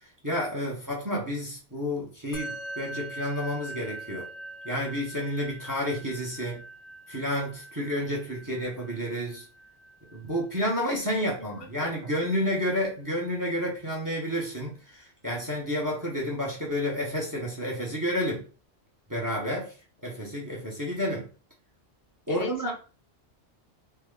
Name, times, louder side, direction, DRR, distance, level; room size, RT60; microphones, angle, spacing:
voice 1, 0.2-4.3 4.6-6.6 7.1-9.4 10.1-18.4 19.1-19.7 20.0-21.3 22.3-22.7, equal, 20° right, 0.8 m, -30 dB
Musical instrument, 2.3-11.9, right 1 dB, 80° left, 1.1 m, -43 dB
voice 2, 11.4-12.1 22.3-22.7, left 1 dB, 60° left, 1.1 m, -41 dB
3.2 x 2.2 x 3.5 m
omnidirectional pair, 1.1 m